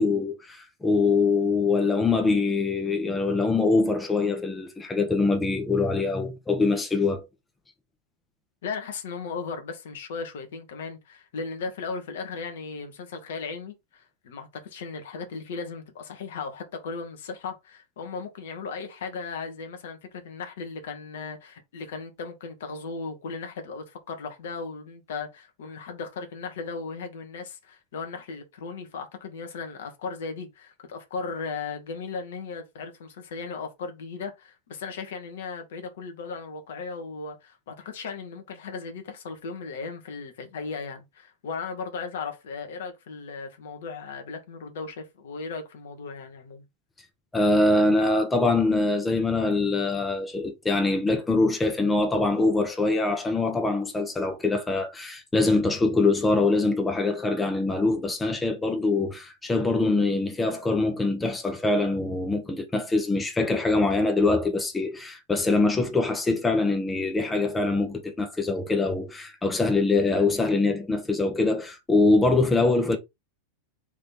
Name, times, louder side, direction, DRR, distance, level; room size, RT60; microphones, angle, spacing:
voice 1, 0.0-7.3 47.3-73.0, left 3 dB, 10° left, 0.9 m, -24 dB
voice 2, 8.6-46.6, left 4 dB, 60° left, 1.2 m, -36 dB
3.6 x 3.2 x 4.4 m
figure-of-eight pair, 90°, 0 cm